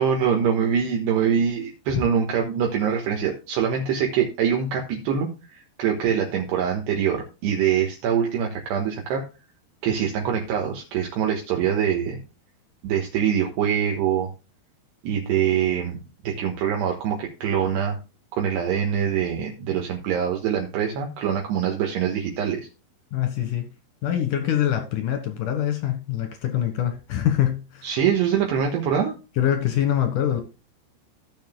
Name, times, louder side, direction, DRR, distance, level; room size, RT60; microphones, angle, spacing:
voice 1, 0.0-9.2 9.8-12.2 12.8-14.3 15.0-16.0 16.2-18.0 18.3-22.7 27.8-29.1, right 8 dB, 70° right, 3.3 m, -24 dB
voice 2, 23.1-23.7 24.0-27.9 29.4-30.4, left 11 dB, 65° left, 2.1 m, -24 dB
16.0 x 7.2 x 2.2 m
omnidirectional pair, 5.5 m